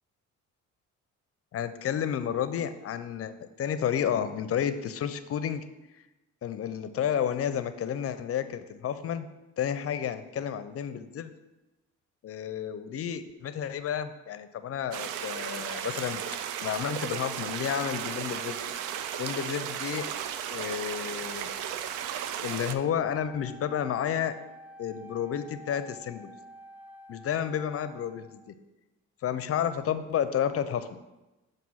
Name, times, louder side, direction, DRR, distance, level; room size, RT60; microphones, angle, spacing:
voice 1, 1.5-5.6 6.4-9.3 9.6-11.3 12.2-16.2 16.6-18.6 19.2-20.1 20.5-21.5 22.4-24.4 24.8-26.3 27.1-28.4 29.2-31.0, left 9 dB, 50° left, 11 dB, 0.5 m, -31 dB
sound 1, 14.9-22.7, right 9 dB, 85° right, 0.5 m, -35 dB
Wind instrument woodwind instrument, 23.0-28.5, equal, 5° right, 0.4 m, -49 dB
7.4 x 2.7 x 5.5 m, 1.0 s
cardioid pair, 90°, 30 cm